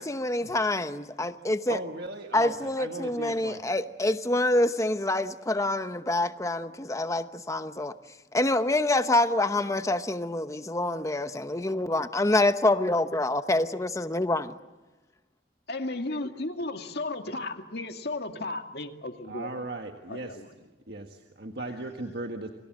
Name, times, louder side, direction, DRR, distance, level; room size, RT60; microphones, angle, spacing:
voice 1, 0.0-1.8 2.3-7.9 8.3-14.6, left 2 dB, 15° left, 0.9 m, -26 dB
voice 2, 1.7-3.6 19.3-20.4 20.9-22.5, right 2 dB, 60° right, 1.6 m, -37 dB
voice 3, 15.7-19.6 20.1-20.5, left 2 dB, 60° left, 2.3 m, -34 dB
28.5 x 25.5 x 7.7 m
head